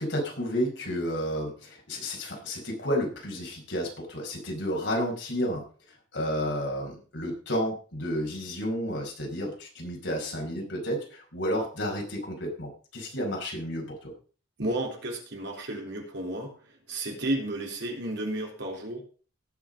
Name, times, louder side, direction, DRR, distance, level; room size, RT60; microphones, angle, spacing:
voice 1, 0.0-5.6 6.1-14.1, equal, 60° left, 0 dB, 5.2 m, -31 dB
voice 2, 14.6-16.5 16.9-19.0, right 1 dB, 60° right, 1 dB, 3.7 m, -32 dB
18.0 x 6.6 x 5.2 m, 0.40 s
head